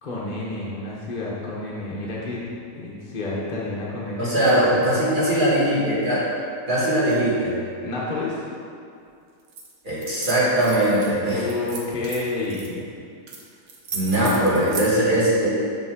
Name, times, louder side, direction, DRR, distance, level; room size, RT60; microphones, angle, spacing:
voice 1, 0.0-2.4 2.7-4.8 7.8-8.4 11.3-12.8 13.9-14.7, left 2 dB, 40° left, -6 dB, 0.7 m, -30 dB
voice 2, 4.2-6.2 6.7-7.6 9.8-11.4 13.9-15.6, right 1 dB, 30° right, -9 dB, 2.0 m, -20 dB
sound 1, 9.5-9.7 10.0-11.1 11.5-12.7 13.3-13.4 13.7-14.9, right 4 dB, 60° right, 1.2 m, -35 dB
6.9 x 5.9 x 3.6 m, 2.4 s
omnidirectional pair, 1.8 m